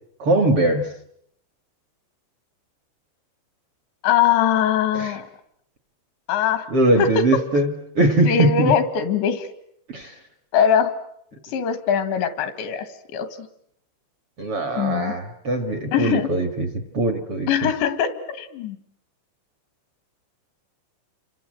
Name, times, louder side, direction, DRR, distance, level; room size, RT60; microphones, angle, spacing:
voice 1, 0.2-0.9 4.9-5.2 6.7-8.8 9.9-10.2 14.4-17.7, right 2 dB, 50° right, 8 dB, 1.8 m, -21 dB
voice 2, 4.0-5.3 6.3-6.7 7.0-7.2 8.3-9.5 10.5-11.0 11.4-12.9 13.1-13.5 14.8-15.1 15.9-16.3 17.5-18.8, left 8 dB, 80° left, 11 dB, 4.0 m, -21 dB
29.0 x 26.0 x 7.7 m, 0.73 s
omnidirectional pair, 5.1 m